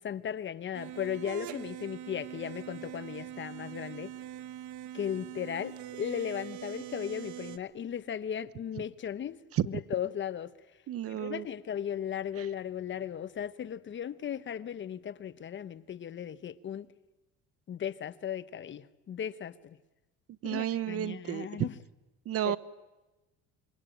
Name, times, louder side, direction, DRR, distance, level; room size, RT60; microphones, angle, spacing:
voice 1, 0.0-4.1 4.9-10.5 11.1-16.9 17.7-19.8 20.4-21.8 22.4-22.6, left 9 dB, 40° left, 1.0 m, -36 dB
sound 1, 0.7-7.6, right 12 dB, 70° right, 1.5 m, -43 dB
voice 2, 10.9-11.4 12.4-12.5 20.4-21.5 22.3-22.6, right 11 dB, 50° right, 1.0 m, -31 dB
26.5 x 24.0 x 9.2 m
cardioid pair, 115°, 30 cm